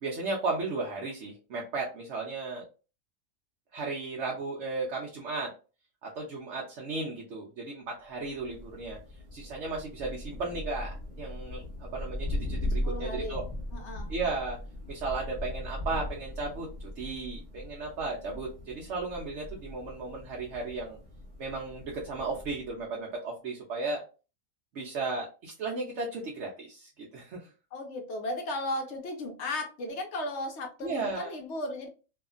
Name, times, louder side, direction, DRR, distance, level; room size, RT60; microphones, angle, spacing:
voice 1, 0.0-2.6 3.7-5.5 6.0-9.0 9.3-11.6 11.9-13.4 14.1-14.6 14.9-21.0 21.4-24.0 24.7-27.5 30.8-31.4, right 3 dB, 60° right, 0.9 m, -35 dB
Thunder, 8.2-22.8, left 1 dB, 25° right, 1.0 m, -38 dB
voice 2, 12.8-13.4 13.7-14.1 27.7-31.9, left 1 dB, 60° left, 0.8 m, -35 dB
2.7 x 2.4 x 2.4 m
omnidirectional pair, 1.5 m